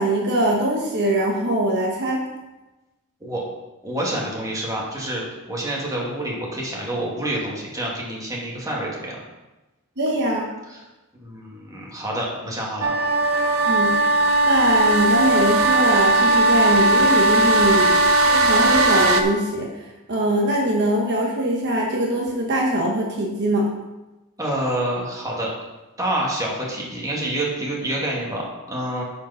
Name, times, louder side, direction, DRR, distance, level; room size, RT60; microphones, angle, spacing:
voice 1, 0.0-2.2 10.0-10.4 13.6-13.9 14.4-17.9 18.2-23.7, right 1 dB, 55° right, -1 dB, 1.2 m, -22 dB
voice 2, 3.8-9.2 10.7-10.8 11.2-12.9 24.4-25.5 26.0-29.0, right 1 dB, 15° right, -4 dB, 2.1 m, -27 dB
sound 1, 12.8-19.2, right 2 dB, 75° right, 0.8 m, -18 dB
9.1 x 5.1 x 5.8 m, 1.1 s
head